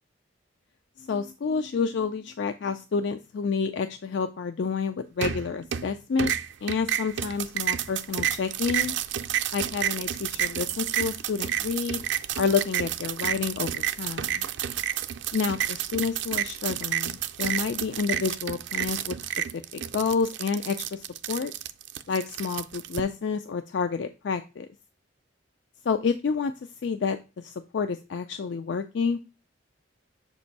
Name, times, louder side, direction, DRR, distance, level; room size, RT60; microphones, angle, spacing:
voice 1, 1.0-6.3 6.6-8.9 9.5-12.0 12.4-14.4 15.3-21.5 22.1-24.7 25.9-29.2, left 5 dB, 65° left, 9 dB, 0.4 m, -29 dB
sound 1, 5.2-5.9 6.2-23.0, right 10 dB, 65° right, 0.4 m, -30 dB
7.1 x 2.6 x 5.2 m, 0.29 s
head